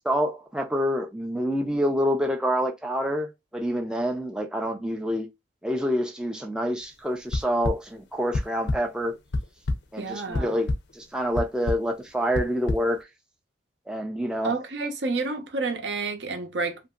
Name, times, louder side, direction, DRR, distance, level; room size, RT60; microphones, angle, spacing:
voice 1, 0.0-5.3 5.6-9.1 9.9-13.0 13.9-14.5, equal, 5° right, 0.3 m, -27 dB
sound 1, 7.3-7.7 8.3-8.8 9.2-9.8 10.3-10.8 11.4-11.8 12.3-12.8, left 2 dB, 70° left, 0.5 m, -25 dB
voice 2, 10.0-10.6 14.4-16.8, right 3 dB, 75° right, 0.7 m, -29 dB
2.8 x 2.6 x 2.3 m
head